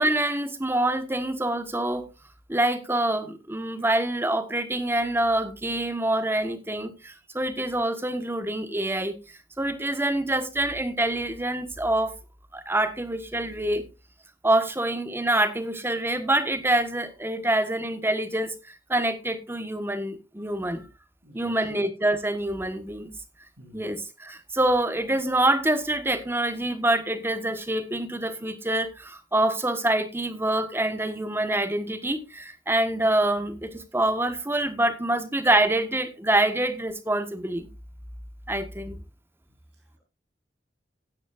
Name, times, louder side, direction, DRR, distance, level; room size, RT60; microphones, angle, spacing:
voice 1, 0.0-2.0 2.5-9.2 9.6-12.1 12.5-13.8 14.4-20.8 21.3-23.1 23.7-37.7 38.5-39.0, right 1 dB, 15° right, 1.3 m, -26 dB
voice 2, 21.2-21.7 23.6-23.9 39.7-40.0, left 1 dB, 90° right, 7.1 m, -51 dB
16.0 x 9.6 x 2.5 m
head